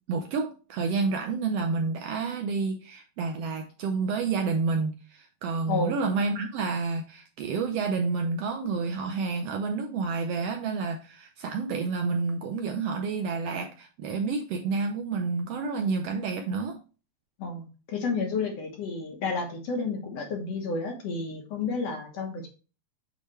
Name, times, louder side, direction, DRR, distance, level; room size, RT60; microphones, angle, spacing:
voice 1, 0.1-16.8, right 4 dB, 75° right, 1.5 m, -29 dB
voice 2, 5.7-6.0 17.4-22.5, left 4 dB, 65° left, 2.3 m, -31 dB
8.3 x 3.3 x 4.2 m
omnidirectional pair, 3.3 m